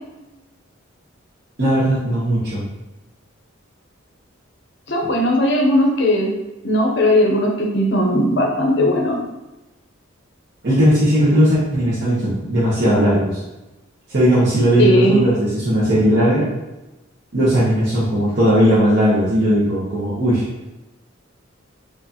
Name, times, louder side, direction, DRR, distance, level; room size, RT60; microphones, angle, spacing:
voice 1, 1.6-2.6 10.6-13.4 14.1-16.5 17.3-20.4, equal, 50° right, -10 dB, 1.0 m, -17 dB
voice 2, 4.9-6.3 6.6-9.2 14.8-15.2, left 1 dB, 55° left, -1 dB, 0.7 m, -17 dB
4.8 x 2.5 x 2.8 m, 1.0 s
head